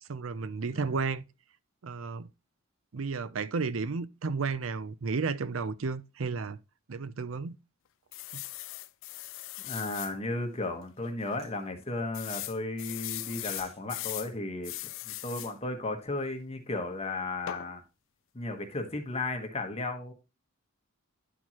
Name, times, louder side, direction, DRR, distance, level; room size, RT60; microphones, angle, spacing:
voice 1, 0.0-1.2 1.8-2.3 2.9-6.6 6.9-7.6 8.3-8.4, right 4 dB, 75° right, 0.6 m, -33 dB
sound 1, 8.1-10.1 10.7-10.8 11.0-11.1 12.1-14.3 14.6-15.5 17.5-17.7, left 16 dB, 65° left, 0.4 m, -39 dB
voice 2, 9.6-14.7 15.0-17.8 18.3-20.1, left 2 dB, 30° left, 1.2 m, -34 dB
sound 2, 11.4-11.6 13.2-13.8 14.1-14.3, right 2 dB, 35° right, 1.8 m, -51 dB
11.5 x 4.6 x 2.9 m
head